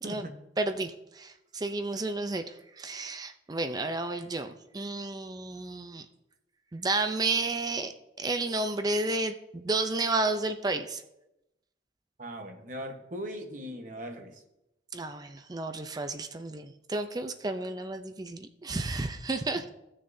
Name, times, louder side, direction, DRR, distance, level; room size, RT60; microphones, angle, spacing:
voice 1, 0.0-0.4 12.2-14.4 19.5-19.6, equal, 45° right, 4 dB, 1.1 m, -39 dB
voice 2, 0.6-6.1 6.7-7.9 8.2-11.0 14.9-19.6, right 2 dB, 20° right, 8 dB, 0.4 m, -32 dB
16.0 x 6.5 x 2.7 m, 0.89 s
head